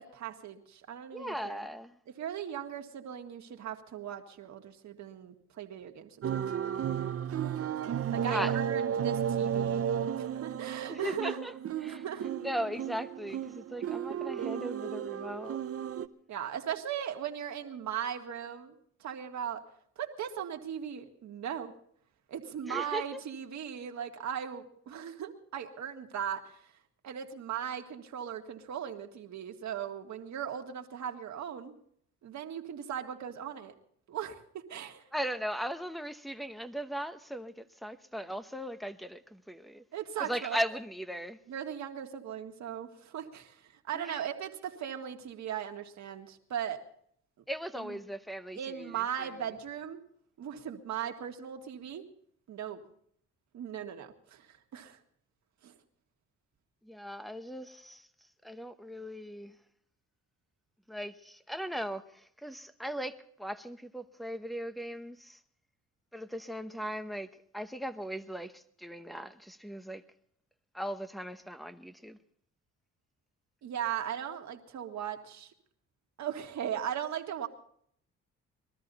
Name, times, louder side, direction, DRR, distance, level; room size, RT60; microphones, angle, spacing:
voice 1, 0.0-1.7 2.1-6.3 7.8-9.8 10.2-11.4 11.8-12.3 16.3-18.7 19.0-19.6 20.0-21.7 22.3-26.6 27.0-31.7 32.2-33.7 34.1-35.0 39.9-40.6 41.5-43.6 43.9-46.8 47.7-48.0 48.6-50.0 50.4-52.0 52.5-52.8 53.5-55.0 55.6-55.7 73.6-75.5 76.2-77.5, right 9 dB, 65° right, 1.9 m, -38 dB
voice 2, 1.1-1.9 8.1-8.6 10.9-11.5 11.8-12.0 12.4-15.6 22.7-23.0 35.1-39.8 40.2-41.4 43.9-44.2 47.5-49.3 56.9-58.0 58.4-59.5 60.9-62.0 62.4-65.4 66.1-67.3 67.5-70.0 70.7-72.2, equal, ahead, 0.9 m, -38 dB
sound 1, 6.2-16.1, right 9 dB, 50° right, 0.8 m, -33 dB
22.0 x 13.5 x 4.1 m
cardioid pair, 90°, 30 cm